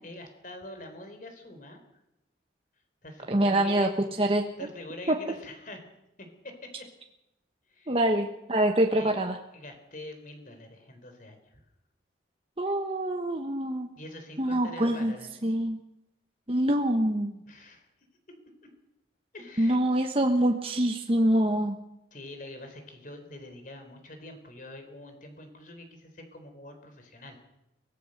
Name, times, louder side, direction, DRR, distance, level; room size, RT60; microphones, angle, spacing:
voice 1, 0.0-1.8 3.0-4.3 4.6-5.8 6.2-6.9 7.7-8.0 8.9-9.1 9.5-11.6 14.0-15.3 17.5-17.9 19.3-20.2 22.1-27.4, left 1 dB, 45° left, 6 dB, 4.0 m, -45 dB
voice 2, 3.3-3.9 4.2-4.4 5.1-5.2 7.9-9.4 12.6-13.9 14.4-15.1 15.4-15.8 16.5-17.4 19.6-21.8, right 1 dB, 30° right, 3 dB, 1.2 m, -25 dB
23.5 x 17.5 x 6.6 m, 0.88 s
head